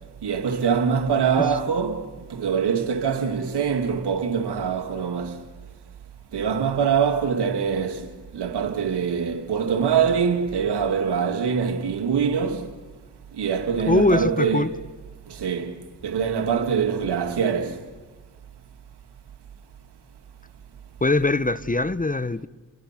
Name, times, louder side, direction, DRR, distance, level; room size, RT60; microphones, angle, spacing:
voice 1, 0.2-5.4 6.3-8.1 8.3-12.7 13.3-14.8 15.3-15.8 16.0-17.8, right 6 dB, 80° right, 2.4 m, -24 dB
voice 2, 13.9-14.7 21.0-22.5, left 2 dB, 20° left, 1.0 m, -22 dB
29.5 x 24.5 x 6.0 m
supercardioid pair, 40°, 39 cm